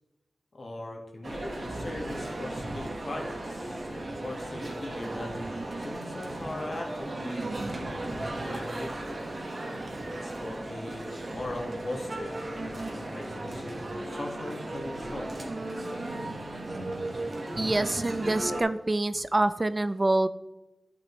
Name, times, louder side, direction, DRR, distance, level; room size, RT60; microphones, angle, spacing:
voice 1, 0.5-5.4 5.8-9.2 10.1-15.3, left 1 dB, 60° left, 1 dB, 1.8 m, -40 dB
Male speech man speaking, 1.2-18.6, right 1 dB, 55° right, 1.5 m, -36 dB
voice 2, 17.6-20.3, right 2 dB, 35° right, 13 dB, 0.4 m, -26 dB
11.5 x 6.0 x 3.1 m, 0.98 s
wide cardioid pair, 70°, 0 cm